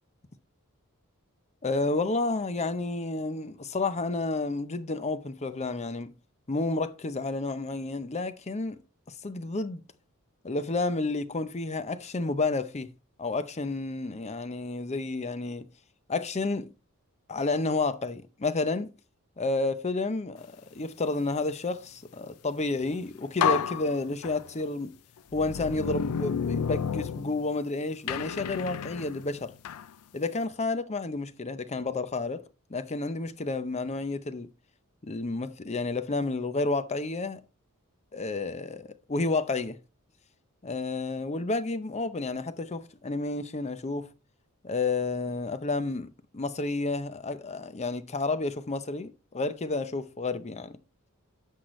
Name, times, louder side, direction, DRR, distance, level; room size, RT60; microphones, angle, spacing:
voice 1, 1.6-6.1 6.5-8.8 9.2-9.8 10.4-12.9 13.2-15.7 16.1-16.7 17.3-18.9 19.4-24.9 25.3-29.5 30.1-32.4 32.7-34.5 35.0-37.4 38.1-39.8 40.6-44.1 44.6-50.8, left 3 dB, 30° left, 0.6 m, -30 dB
sound 1, 22.8-23.0 23.4-24.7 25.3-27.7 28.1-29.9, left 7 dB, 80° left, 0.4 m, -31 dB
10.0 x 6.4 x 3.1 m
head